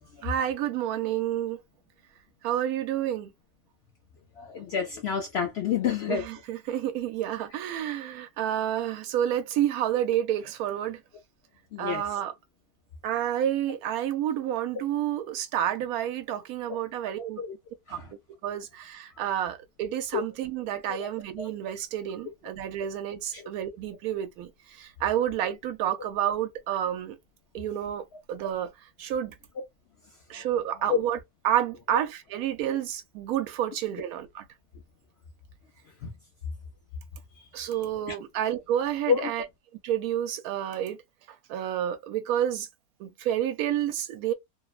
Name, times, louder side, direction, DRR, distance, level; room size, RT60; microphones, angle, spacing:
voice 1, 0.2-1.6 2.4-3.3 6.1-11.0 11.8-12.3 13.0-17.4 17.9-18.0 18.4-24.5 24.8-27.2 27.5-28.7 29.0-29.4 30.3-31.2 31.4-34.5 37.5-39.4 39.8-41.0 41.5-42.7 43.0-44.3, right 11 dB, 75° right, 1.0 m, -29 dB
voice 2, 4.4-6.2 11.7-12.2 17.4-17.5 17.9-18.1 19.4-19.5 20.9-21.1 21.4-21.5 23.3-23.5 30.9-31.0 36.0-36.1 39.1-39.3, left 7 dB, 70° left, 0.6 m, -29 dB
2.8 x 2.0 x 2.3 m
omnidirectional pair, 1.6 m